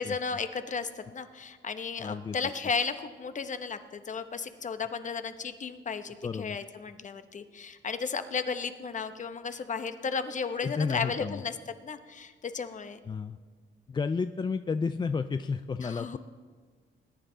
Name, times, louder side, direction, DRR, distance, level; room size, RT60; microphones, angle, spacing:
voice 1, 0.0-11.5 11.8-13.0 15.8-16.2, left 5 dB, 40° left, 10 dB, 0.9 m, -34 dB
voice 2, 2.0-2.4 6.2-6.6 10.6-11.4 13.1-13.4 13.9-16.2, left 5 dB, 20° left, 10 dB, 0.4 m, -31 dB
20.5 x 10.0 x 3.9 m, 1.5 s
cardioid pair, 90°, 20 cm